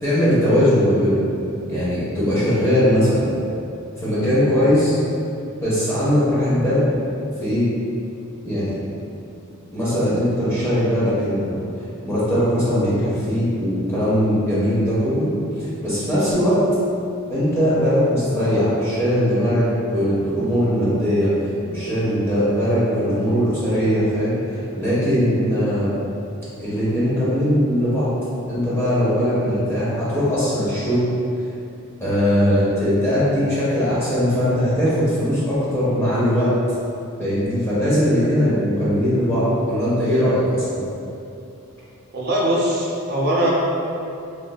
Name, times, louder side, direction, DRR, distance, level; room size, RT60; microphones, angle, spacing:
voice 1, 0.0-1.3 1.7-3.3 4.0-4.9 5.6-6.9 7.4-7.7 8.4-8.7 9.7-11.6 12.0-16.6 17.3-21.3 21.7-25.9 26.6-28.1 28.5-31.0 32.0-36.5 37.2-40.9, equal, 15° left, -10 dB, 0.6 m, -20 dB
voice 2, 42.1-43.5, right 1 dB, 50° right, -5 dB, 0.5 m, -21 dB
3.1 x 2.4 x 2.2 m, 2.6 s
head